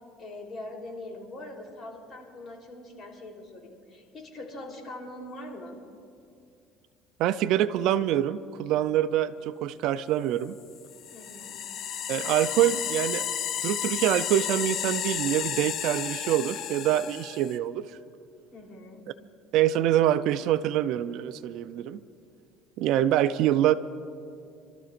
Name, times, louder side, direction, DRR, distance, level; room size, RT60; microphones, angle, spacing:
voice 1, 0.2-5.8 11.1-11.6 18.5-19.0, left 1 dB, 35° left, 0 dB, 3.5 m, -42 dB
voice 2, 7.2-10.5 12.1-13.2 13.6-17.9 19.5-22.0 22.8-23.7, right 12 dB, 65° right, 13 dB, 0.4 m, -25 dB
sound 1, 10.8-17.6, left 9 dB, 50° left, 0.6 m, -32 dB
30.0 x 13.0 x 2.5 m, 2.5 s
cardioid pair, 120°, 0 cm